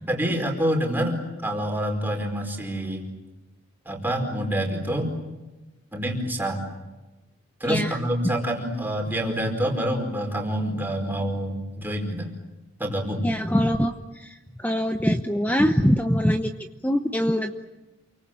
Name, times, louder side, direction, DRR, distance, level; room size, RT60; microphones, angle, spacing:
voice 1, 0.1-3.0 3.8-5.1 5.9-6.6 7.6-12.3 12.8-13.2, equal, 10° right, 2 dB, 4.8 m, -27 dB
voice 2, 7.6-8.0 13.2-16.5 16.8-17.5, equal, 10° left, 6 dB, 0.8 m, -23 dB
29.0 x 24.0 x 7.6 m, 1.1 s
head